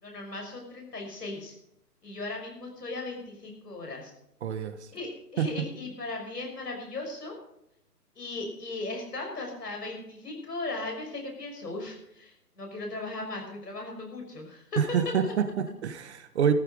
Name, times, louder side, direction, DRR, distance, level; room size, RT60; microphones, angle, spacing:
voice 1, 0.0-1.5 2.0-4.1 4.9-7.3 8.2-15.3, left 2 dB, 75° left, 6.2 m, -37 dB
voice 2, 4.4-4.8 5.4-5.5 14.8-16.5, right 7 dB, 45° right, 1.3 m, -27 dB
14.0 x 14.0 x 5.1 m
figure-of-eight pair, 135°, 48 cm